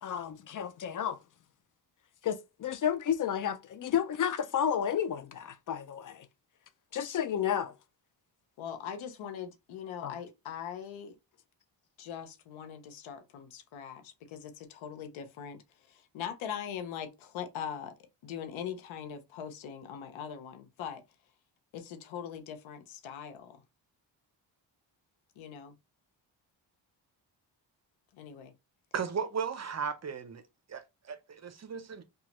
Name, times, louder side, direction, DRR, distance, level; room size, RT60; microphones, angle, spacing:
voice 1, 0.0-1.2 2.2-6.3 6.9-7.7 10.0-10.1, left 9 dB, 45° left, 0.4 m, -31 dB
voice 2, 8.6-11.2 12.0-15.6 15.9-17.9 18.2-21.0 21.7-23.6 25.4-25.7 28.1-28.5, left 8 dB, 85° left, 0.7 m, -41 dB
voice 3, 28.9-30.4 30.7-32.0, right 6 dB, 35° right, 0.6 m, -36 dB
2.9 x 2.3 x 2.9 m
supercardioid pair, 55°, 46 cm